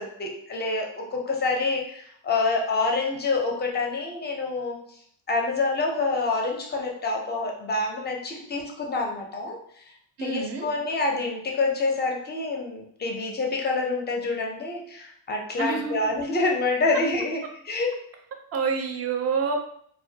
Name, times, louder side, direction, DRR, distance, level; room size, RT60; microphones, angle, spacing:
voice 1, 0.0-4.8 5.3-9.8 10.2-17.9, left 3 dB, 25° left, 0 dB, 0.5 m, -27 dB
voice 2, 10.2-10.7 15.6-16.0 18.5-19.6, right 5 dB, 35° right, 3 dB, 0.4 m, -27 dB
2.2 x 2.1 x 2.7 m, 0.65 s
cardioid pair, 115°, 46 cm